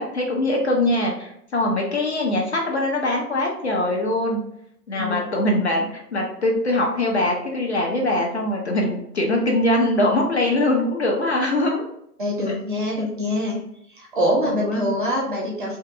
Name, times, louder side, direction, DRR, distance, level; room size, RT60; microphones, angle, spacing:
voice 1, 0.0-4.4 4.9-11.8 14.4-14.8, left 1 dB, 45° left, 0 dB, 0.5 m, -22 dB
voice 2, 4.9-5.3 12.2-13.6 13.9-15.8, left 1 dB, 35° right, -2 dB, 0.5 m, -24 dB
2.5 x 2.4 x 2.5 m, 0.74 s
figure-of-eight pair, 125°, 49 cm